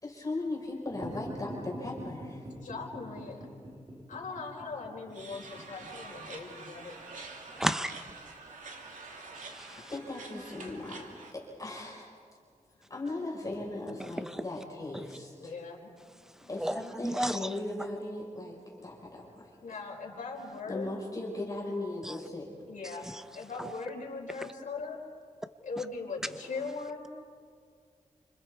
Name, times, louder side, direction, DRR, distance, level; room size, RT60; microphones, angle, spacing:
voice 1, 0.0-2.5 9.9-11.1 11.3-12.1 12.9-15.5 16.5-19.5 20.7-22.5, left 2 dB, 25° left, 5.1 m, -38 dB
sound 1, 0.9-7.5, equal, 30° right, 3.8 m, -45 dB
voice 2, 2.6-3.4 4.1-6.9 9.7-9.8 12.4-12.5 12.9-13.0 15.4-16.9 19.6-20.9 22.7-25.0 25.6-27.1, left 4 dB, 85° left, 4.7 m, -40 dB
sound 2, 5.1-11.3, right 3 dB, 80° right, 2.6 m, -47 dB
voice 3, 7.6-8.0 9.3-9.9 14.0-14.6 14.9-15.2 16.2-17.9 22.0-22.2 23.1-23.2 23.6-23.7, equal, 5° right, 0.8 m, -35 dB
30.0 x 26.5 x 4.8 m
wide cardioid pair, 110°, 13 cm